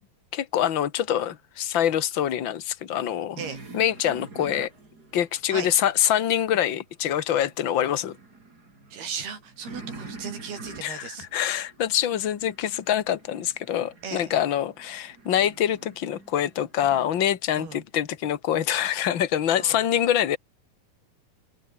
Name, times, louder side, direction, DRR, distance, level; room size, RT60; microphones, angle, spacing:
voice 1, 0.3-3.4 3.7-4.7 5.1-8.2 10.8-20.4, left 10 dB, 55° left, 1.3 m, -25 dB
sound 1, 3.4-6.7 7.1-17.1, right 3 dB, 25° right, 4.4 m, -46 dB
voice 2, 8.9-11.3 14.0-14.3 17.6-17.8 19.5-19.8, right 6 dB, 80° right, 6.7 m, -36 dB
omnidirectional pair, 4.5 m